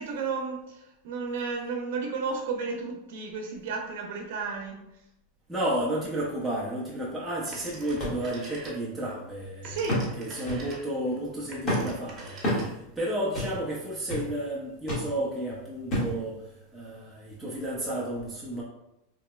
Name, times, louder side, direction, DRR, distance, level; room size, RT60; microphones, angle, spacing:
voice 1, 0.0-4.9 9.6-10.1, right 4 dB, 70° right, 2 dB, 0.6 m, -33 dB
voice 2, 5.5-16.4 16.7-18.6, right 1 dB, 5° right, -6 dB, 0.5 m, -32 dB
Telephone, 7.5-9.1 9.4-13.0, right 2 dB, 25° right, 0.9 m, -45 dB
sound 1, 8.0-8.2 8.7-8.8 9.9-10.2 10.5-10.7 11.7-11.9 12.4-12.7 13.4-13.6 14.1-14.3 14.9-15.1 15.9-16.2 16.9-17.0, equal, 30° left, 1.4 m, -29 dB
3.9 x 2.8 x 2.2 m, 0.89 s
supercardioid pair, 155°, 0 cm